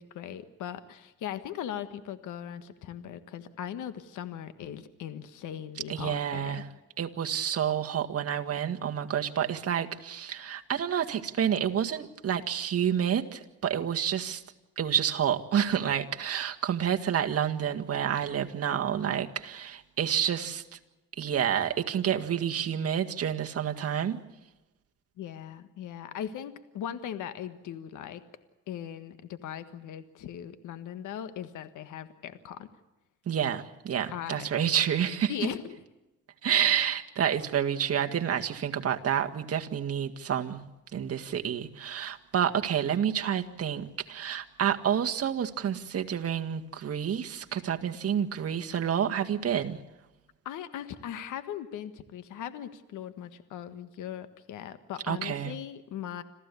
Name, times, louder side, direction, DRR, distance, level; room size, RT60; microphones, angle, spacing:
voice 1, 0.0-6.6 25.2-28.2 28.7-32.7 34.1-34.5 35.3-35.8 50.4-56.2, left 10 dB, 85° left, 11 dB, 1.6 m, -39 dB
voice 2, 5.9-6.6 7.0-14.4 14.8-20.8 21.2-24.2 33.3-35.3 36.4-40.6 40.9-49.8 55.1-55.5, right 9 dB, 50° right, 5 dB, 1.8 m, -29 dB
27.0 x 15.5 x 8.4 m, 1.0 s
cardioid pair, 90°, 30 cm